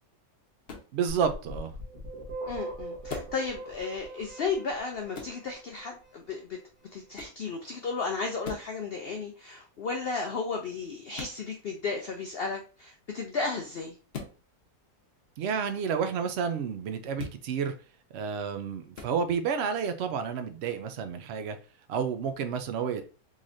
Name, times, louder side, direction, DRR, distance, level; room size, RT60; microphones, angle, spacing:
sound 1, 0.7-0.9 3.1-3.4 5.1-5.4 7.1-7.4 8.4-8.7 11.1-11.4 14.1-14.4 17.1-17.4 18.9-19.1, left 4 dB, 50° left, 0.8 m, -39 dB
voice 1, 0.9-1.7 15.4-17.7 18.1-21.6 21.9-23.0, right 6 dB, 75° right, 8 dB, 0.6 m, -30 dB
sound 2, 1.1-5.9, right 2 dB, 35° right, 1.2 m, -41 dB
voice 2, 2.5-6.6 6.9-13.9, left 4 dB, 80° left, 3 dB, 0.5 m, -34 dB
3.9 x 3.1 x 2.5 m, 0.36 s
omnidirectional pair, 1.6 m